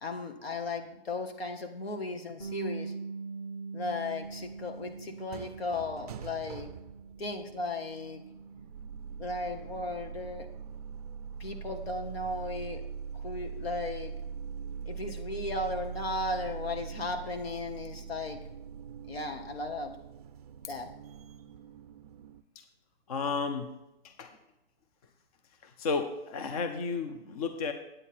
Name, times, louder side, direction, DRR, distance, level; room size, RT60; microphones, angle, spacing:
voice 1, 0.0-2.9 3.7-6.7 7.2-8.2 9.2-10.5 11.4-12.8 13.2-14.1 14.9-18.4 19.1-19.9 20.7-20.9, left 2 dB, 80° left, 5 dB, 1.7 m, -36 dB
Bass guitar, 2.4-8.6, right 4 dB, 20° left, 1.0 m, -42 dB
sound 1, 4.2-22.4, right 6 dB, 40° right, 0.4 m, -43 dB
voice 2, 23.1-23.7 24.0-24.4 25.6-27.7, left 4 dB, 40° left, 8 dB, 0.7 m, -33 dB
8.8 x 8.6 x 4.3 m, 0.93 s
hypercardioid pair, 155°, 30 cm